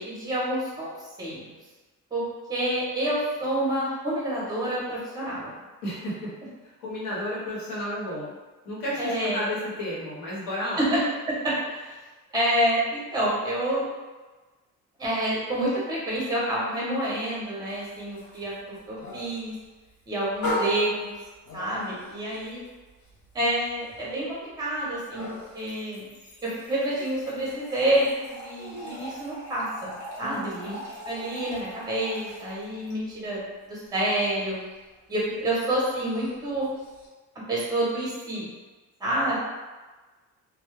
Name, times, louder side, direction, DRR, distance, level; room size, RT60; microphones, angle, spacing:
voice 1, 0.0-1.5 2.1-2.2 2.5-5.5 9.0-9.5 10.8-11.0 11.4-12.0 12.3-13.8 15.0-18.5 18.9-19.5 20.1-21.1 21.5-22.6 23.3-25.3 25.5-26.1 26.4-29.9 30.2-30.7 31.1-33.4 33.7-34.6 35.1-36.7 37.5-38.5 39.0-39.4, right 1 dB, 10° right, -6 dB, 0.7 m, -28 dB
voice 2, 5.8-6.3 6.6-8.4 8.6-10.9 30.2-30.8, left 1 dB, 85° left, -5 dB, 1.0 m, -32 dB
sound 1, 17.7-30.2 30.4-37.1, left 1 dB, 45° left, 0.6 m, -40 dB
Trickle dribble / Fill (with liquid), 25.6-32.9, equal, 60° left, 1.1 m, -43 dB
2.2 x 2.0 x 3.1 m, 1.2 s
cardioid pair, 170°, 34 cm